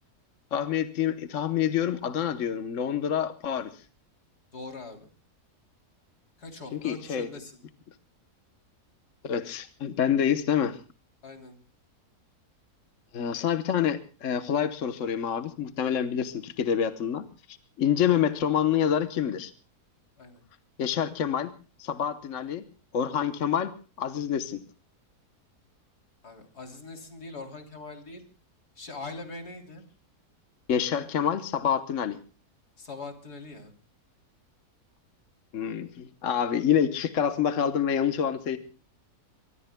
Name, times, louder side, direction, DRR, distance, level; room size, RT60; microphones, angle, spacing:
voice 1, 0.5-3.7 6.7-7.3 9.2-10.8 13.1-19.5 20.8-21.5 21.8-22.6 22.9-24.6 30.7-32.2 35.5-38.6, left 8 dB, 55° left, 10 dB, 1.3 m, -27 dB
voice 2, 4.5-5.1 6.4-7.6 11.2-11.6 20.2-20.4 26.2-28.2 28.8-29.8 32.8-33.7, left 3 dB, 85° left, 4 dB, 3.7 m, -42 dB
24.0 x 23.5 x 2.2 m, 0.35 s
omnidirectional pair, 1.6 m